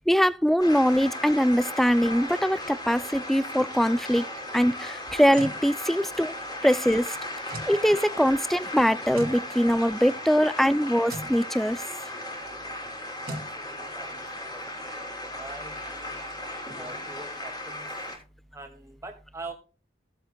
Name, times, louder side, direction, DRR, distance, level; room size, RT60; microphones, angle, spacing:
voice 1, 0.1-4.2 4.5-6.3 6.6-7.2 7.7-11.8, equal, ahead, 0.3 m, -22 dB
sound 1, 0.6-18.2, left 1 dB, 25° left, 3.3 m, -36 dB
sound 2, 5.1-5.6 7.5-7.8 9.1-9.4 11.1-11.3 13.3-13.5, right 1 dB, 50° right, 1.8 m, -36 dB
voice 2, 13.3-14.2 14.5-14.6 15.3-16.2 16.7-17.9 18.5-19.5, right 2 dB, 15° right, 2.1 m, -43 dB
17.0 x 8.0 x 2.2 m
head